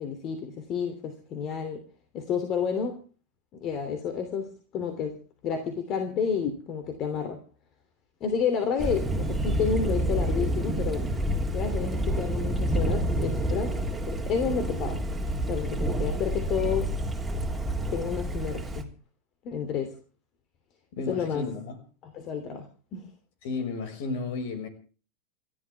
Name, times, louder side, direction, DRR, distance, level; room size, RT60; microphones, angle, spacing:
voice 1, 0.0-1.8 2.1-3.0 3.5-5.2 5.4-7.4 8.2-11.1 11.5-13.8 14.0-15.0 15.5-16.9 17.9-18.9 19.4-20.0 21.1-21.5 22.0-23.1, left 6 dB, 35° left, 3.0 m, -30 dB
Thunder, 8.8-18.8, right 1 dB, 5° right, 3.4 m, -28 dB
voice 2, 20.9-21.8 23.4-24.7, left 3 dB, 50° left, 5.7 m, -33 dB
29.0 x 12.0 x 3.5 m
figure-of-eight pair, 90°, 0 cm